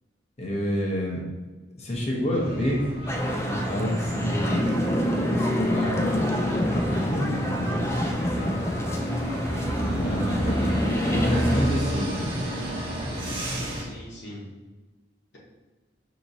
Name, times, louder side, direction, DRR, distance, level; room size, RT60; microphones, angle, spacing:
voice 1, 0.4-1.2 1.8-2.9 3.4-4.8 5.4-6.2 6.7-8.9 9.8-10.6 11.0-12.4, equal, 35° left, -1 dB, 0.8 m, -29 dB
sound 1, 2.3-13.8, equal, 30° right, 0.8 m, -31 dB
sound 2, 3.1-11.7, left 1 dB, 15° left, 0.3 m, -27 dB
voice 2, 8.7-9.3 10.2-10.5 13.6-14.5, left 1 dB, 75° left, -5 dB, 1.0 m, -42 dB
5.9 x 2.9 x 2.7 m, 1.3 s
head